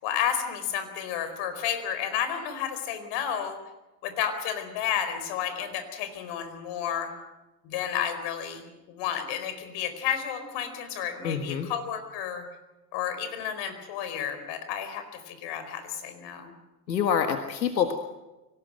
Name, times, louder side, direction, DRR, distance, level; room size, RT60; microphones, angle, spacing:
voice 1, 0.0-3.6 4.0-7.1 7.6-12.4 12.9-16.5, left 9 dB, 55° left, 9 dB, 4.7 m, -31 dB
voice 2, 11.2-11.7 16.9-17.9, left 7 dB, 90° left, 6 dB, 1.7 m, -26 dB
24.5 x 18.0 x 7.7 m, 1.0 s
hypercardioid pair, 85°, 50 cm